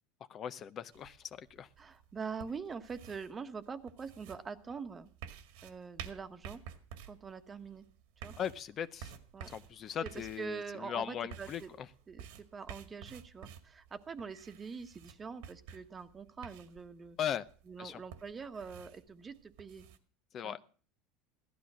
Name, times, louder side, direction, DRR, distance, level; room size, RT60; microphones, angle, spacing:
voice 1, 0.3-1.7 8.4-9.1 9.5-11.9 17.2-17.5 17.8-18.0 20.3-20.6, left 9 dB, 35° left, 13 dB, 0.7 m, -39 dB
sound 1, 0.9-20.0, right 8 dB, 80° right, 1.9 m, -52 dB
voice 2, 1.8-5.1 5.6-6.6 7.1-7.9 8.2-8.3 9.3-9.5 10.0-11.7 12.1-17.2 17.7-19.9 20.4-20.6, right 5 dB, 20° right, 10 dB, 1.2 m, -44 dB
16.0 x 12.5 x 6.2 m, 0.41 s
supercardioid pair, 140°, 0 cm